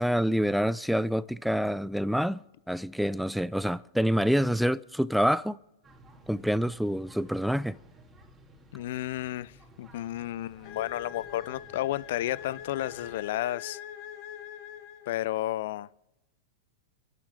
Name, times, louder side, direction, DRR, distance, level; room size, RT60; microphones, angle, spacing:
voice 1, 0.0-2.4 2.7-5.6 6.3-7.8, equal, ahead, 0.5 m, -27 dB
sound 1, 5.8-13.2, right 1 dB, 20° right, 2.5 m, -55 dB
voice 2, 8.7-13.8 15.1-15.9, left 14 dB, 65° left, 0.5 m, -32 dB
sound 2, 10.6-15.5, left 10 dB, 50° left, 1.5 m, -44 dB
29.5 x 11.5 x 3.8 m
hypercardioid pair, 115°, 0 cm